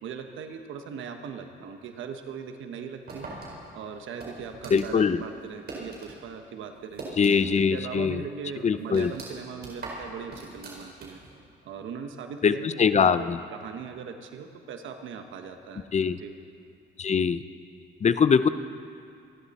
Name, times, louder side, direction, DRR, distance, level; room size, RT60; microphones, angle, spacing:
voice 1, 0.0-3.3 3.7-7.1 7.7-11.2 11.6-15.9 16.2-16.3, right 6 dB, 75° right, 6 dB, 1.2 m, -39 dB
sound 1, 3.1-6.2 6.5-7.7 8.0-8.1 8.5-11.4, right 3 dB, 55° right, 4.6 m, -41 dB
voice 2, 4.7-5.2 7.2-8.2 8.6-9.1 12.4-13.4 15.9-16.2 17.0-17.4 18.0-18.5, left 6 dB, 35° left, 12 dB, 0.7 m, -22 dB
27.0 x 11.5 x 4.3 m, 2.4 s
cardioid pair, 90°, 20 cm